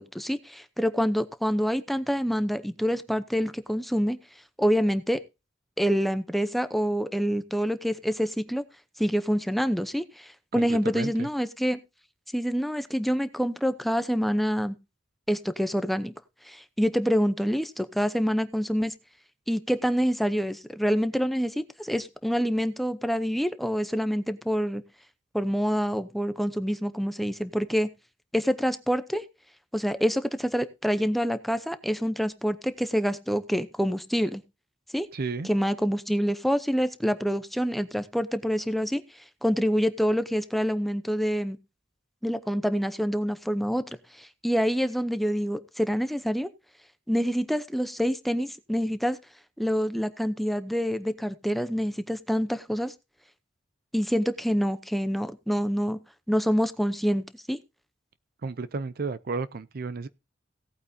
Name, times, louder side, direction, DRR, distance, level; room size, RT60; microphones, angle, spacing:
voice 1, 0.0-4.2 4.6-5.2 5.8-8.6 9.0-11.8 12.3-14.8 15.3-16.1 16.5-18.9 19.5-24.8 25.3-27.9 28.3-29.2 29.7-34.4 34.9-35.1 35.4-39.0 39.4-41.6 42.2-46.5 47.1-49.2 49.6-52.9 53.9-56.0 56.3-57.6, equal, ahead, 0.7 m, -26 dB
voice 2, 10.5-11.3 35.1-35.5 58.4-60.1, right 4 dB, 50° right, 0.5 m, -33 dB
17.0 x 8.7 x 2.8 m
head